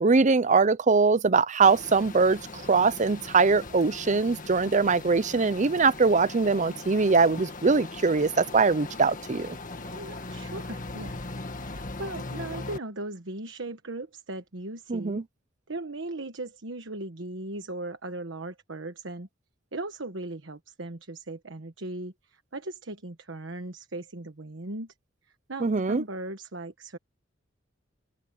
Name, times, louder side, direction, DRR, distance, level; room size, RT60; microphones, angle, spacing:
voice 1, 0.0-9.6 14.9-15.2 25.6-26.0, right 4 dB, 40° right, 0.6 m, -22 dB
sound 1, 1.6-12.8, left 2 dB, 45° left, 1.8 m, -40 dB
voice 2, 9.8-11.2 11.6-15.2 15.7-19.3 19.7-24.9 25.5-27.0, right 2 dB, 70° right, 1.3 m, -38 dB
open air
head